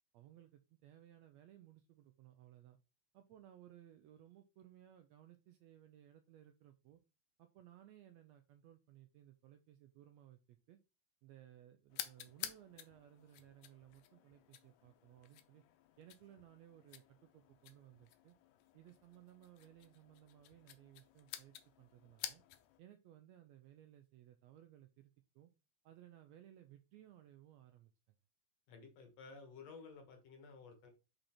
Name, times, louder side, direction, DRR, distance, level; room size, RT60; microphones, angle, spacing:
voice 1, 0.1-2.8 3.1-7.0 7.4-10.8 11.2-15.6 16.0-18.3 18.7-22.4 22.8-25.5 25.8-27.9, right 12 dB, 85° right, 8 dB, 1.5 m, -61 dB
sound 1, 11.9-22.8, left 12 dB, 85° left, 2.3 m, -52 dB
voice 2, 28.7-30.9, left 4 dB, 60° left, 4 dB, 2.3 m, -54 dB
5.7 x 5.4 x 4.3 m, 0.30 s
omnidirectional pair, 3.7 m